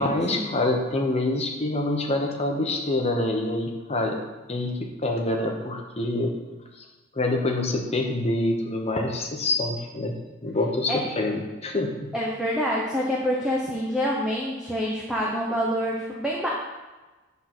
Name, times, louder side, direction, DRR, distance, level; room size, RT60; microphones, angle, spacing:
voice 1, 0.0-4.2 4.5-6.4 7.1-12.1, left 2 dB, 30° left, 1 dB, 1.0 m, -26 dB
voice 2, 12.1-16.5, equal, 5° right, -4 dB, 0.9 m, -26 dB
9.0 x 4.0 x 6.1 m, 1.2 s
head